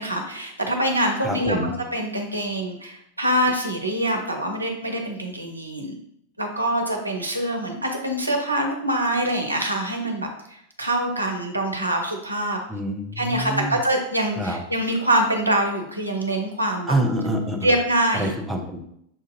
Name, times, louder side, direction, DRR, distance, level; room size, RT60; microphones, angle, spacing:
voice 1, 0.0-1.6 1.9-5.9 6.4-12.6 13.2-17.0 17.6-18.3, right 1 dB, 85° right, 2 dB, 0.6 m, -24 dB
voice 2, 1.2-1.7 12.7-13.8 14.4-14.6 16.9-17.7 18.1-18.8, right 1 dB, 5° right, 0 dB, 0.7 m, -26 dB
6.3 x 2.5 x 2.7 m, 0.74 s
figure-of-eight pair, 90°, 0 cm